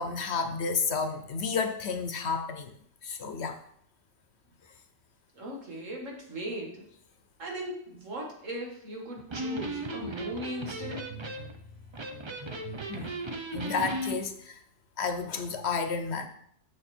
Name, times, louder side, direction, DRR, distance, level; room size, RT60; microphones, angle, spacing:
voice 1, 0.0-2.7 3.0-3.6 12.9-13.1 13.5-14.6 15.0-16.3, left 5 dB, 60° left, 8 dB, 1.0 m, -31 dB
voice 2, 5.4-6.8 7.4-11.0, right 1 dB, 75° right, -1 dB, 2.4 m, -38 dB
Electric guitar, 9.2-14.2, right 1 dB, 30° right, 0.6 m, -36 dB
7.3 x 6.6 x 4.4 m, 0.68 s
omnidirectional pair, 1.3 m